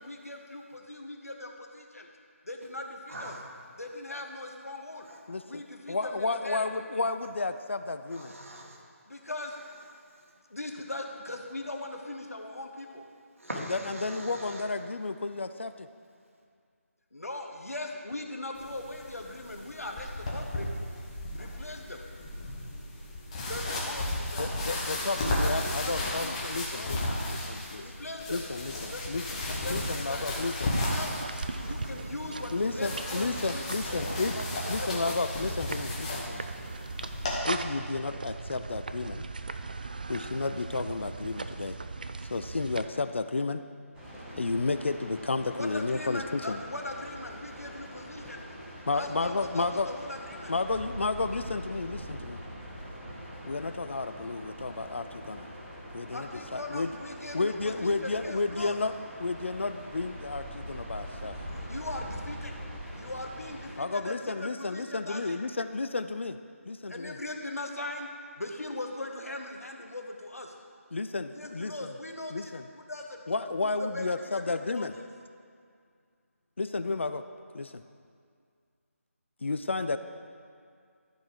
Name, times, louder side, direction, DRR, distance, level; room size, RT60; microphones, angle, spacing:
voice 1, 0.0-2.1 2.4-3.3 3.8-5.1 5.4-6.8 9.1-9.6 10.5-13.0 17.1-20.7 21.3-22.0 23.5-25.2 25.6-26.9 27.8-28.4 28.9-29.1 29.5-31.1 31.6-33.6 33.9-34.1 34.3-35.3 45.6-48.5 48.9-50.5 56.1-58.8 61.5-62.5 62.9-65.4 66.9-68.1 68.4-70.5 71.3-73.2 73.6-74.9, left 2 dB, 75° left, 3 dB, 1.1 m, -40 dB
voice 2, 3.1-3.4 5.0-5.2 8.1-8.8 10.0-10.3 13.4-14.7, right 1 dB, 60° right, -1 dB, 1.8 m, -42 dB
voice 3, 5.3-5.6 5.9-8.3 13.7-15.9 24.4-27.8 28.3-29.2 29.7-30.8 32.5-34.4 34.7-36.4 37.4-39.2 40.1-41.8 42.3-43.6 44.3-46.6 48.9-49.9 50.5-52.4 53.5-55.5 55.9-56.9 57.3-58.9 59.2-61.4 63.8-66.4 66.6-67.1 70.9-71.9 72.3-72.6 73.3-74.9 76.6-77.2 77.5-77.8 79.4-80.0, left 3 dB, 55° left, 10 dB, 0.4 m, -32 dB
sound 1, 18.5-37.4, left 1 dB, 25° left, 1.2 m, -34 dB
sound 2, 30.9-42.9, right 3 dB, 35° right, 0.3 m, -39 dB
sound 3, 43.9-63.8, equal, 5° right, 1.0 m, -43 dB
13.0 x 4.5 x 4.9 m, 2.2 s
figure-of-eight pair, 155°, 8 cm